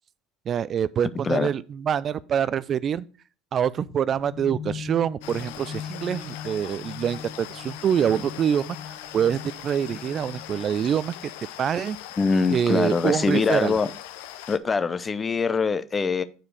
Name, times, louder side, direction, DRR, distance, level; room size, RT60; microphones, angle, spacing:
voice 1, 0.5-3.1 3.5-11.3 11.6-12.0 12.5-13.8, right 8 dB, 40° right, 0.3 m, -25 dB
sound 1, 3.7-11.4, left 8 dB, 40° left, 1.8 m, -41 dB
sound 2, 5.2-14.6, left 12 dB, 70° left, 0.6 m, -41 dB
voice 2, 12.2-13.9 14.5-16.2, left 5 dB, 25° left, 0.7 m, -23 dB
8.9 x 4.8 x 4.7 m
hypercardioid pair, 70°, 0 cm